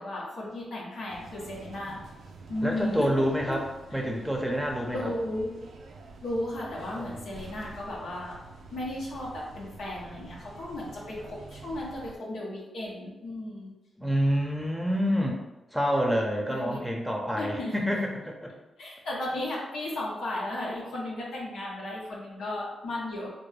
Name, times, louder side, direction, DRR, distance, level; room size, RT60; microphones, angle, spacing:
voice 1, 0.0-2.0 2.5-3.1 3.5-3.6 4.9-5.6 6.2-8.4 8.7-13.7 16.5-16.9 17.3-17.7 18.8-23.3, left 1 dB, 80° left, -4 dB, 0.9 m, -35 dB
sound 1, 1.1-12.2, right 3 dB, 75° right, 0.3 m, -48 dB
voice 2, 2.6-5.1 6.9-7.2 14.0-15.4 15.7-18.5, equal, 5° right, 0 dB, 0.7 m, -28 dB
3.4 x 2.2 x 3.3 m, 1.1 s
supercardioid pair, 50°, 0 cm